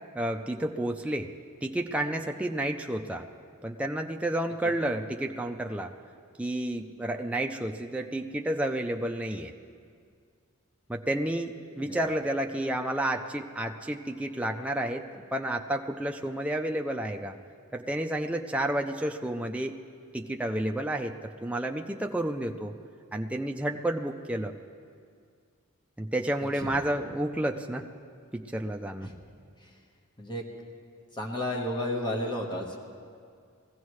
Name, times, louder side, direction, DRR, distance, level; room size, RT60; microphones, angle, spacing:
voice 1, 0.2-1.3 1.6-3.3 3.6-5.9 6.4-9.5 10.9-17.4 17.7-19.7 20.1-22.7 23.1-24.5 26.0-27.9 28.3-29.1, right 1 dB, 5° right, 2 dB, 0.4 m, -31 dB
voice 2, 31.1-32.8, left 1 dB, 20° left, 0 dB, 1.3 m, -32 dB
21.5 x 15.5 x 3.2 m, 2.2 s
head